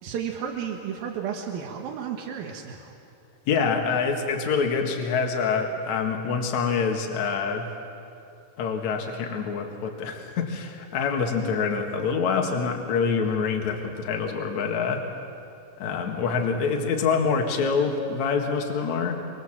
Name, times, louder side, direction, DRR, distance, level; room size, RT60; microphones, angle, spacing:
voice 1, 0.0-2.9, right 8 dB, 90° right, 1 dB, 3.4 m, -33 dB
voice 2, 3.5-7.7 8.6-15.0 15.8-19.2, left 5 dB, 60° left, 2 dB, 3.0 m, -26 dB
26.5 x 24.5 x 7.5 m, 2.6 s
omnidirectional pair, 4.0 m